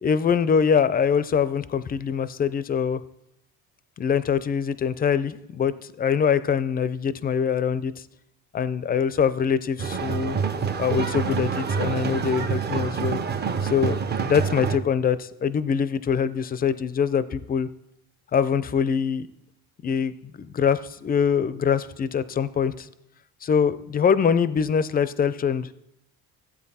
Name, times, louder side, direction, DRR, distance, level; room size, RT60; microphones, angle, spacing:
voice 1, 0.0-3.0 4.0-7.9 8.5-10.4 10.8-13.2 13.6-17.7 18.3-19.3 19.8-22.9 23.4-25.7, left 7 dB, 25° left, 15 dB, 0.5 m, -23 dB
sound 1, 9.8-14.8, right 6 dB, 25° right, 0.6 m, -27 dB
15.0 x 8.2 x 4.2 m, 0.82 s
cardioid pair, 125°, 37 cm